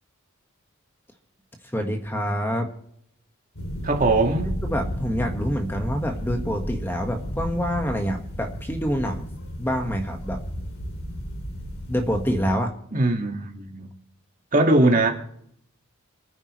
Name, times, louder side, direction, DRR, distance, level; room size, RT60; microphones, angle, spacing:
voice 1, 1.7-2.7 4.6-9.2 9.6-10.4 11.9-12.7, equal, 10° left, 1.5 m, -26 dB
sound 1, 3.6-12.6, equal, 80° left, 3.0 m, -33 dB
voice 2, 3.8-4.6 12.9-13.9 14.5-15.1, right 2 dB, 40° right, 2.0 m, -20 dB
27.0 x 10.0 x 3.2 m
head